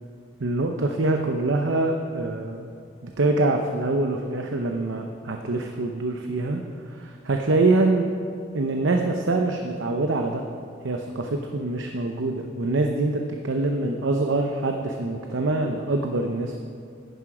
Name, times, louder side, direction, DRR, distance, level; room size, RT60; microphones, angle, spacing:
voice 1, 0.4-2.7 3.0-6.6 6.9-8.1 8.5-10.4 10.8-16.6, right 2 dB, 80° right, 3 dB, 0.7 m, -24 dB
11.0 x 9.8 x 4.9 m, 2.3 s
head